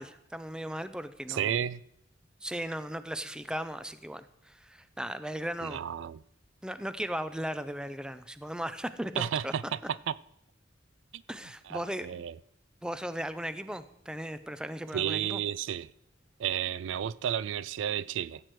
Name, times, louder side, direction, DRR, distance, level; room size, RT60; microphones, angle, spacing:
voice 1, 0.0-1.6 2.4-5.8 6.6-9.5 11.3-12.2 12.8-15.4, equal, 5° right, 0.5 m, -37 dB
voice 2, 1.3-1.8 5.6-6.2 9.2-9.8 10.1-10.2 11.1-11.2 11.7-12.3 14.9-15.9 16.4-18.4, right 9 dB, 70° right, 0.3 m, -32 dB
14.5 x 7.9 x 4.6 m
head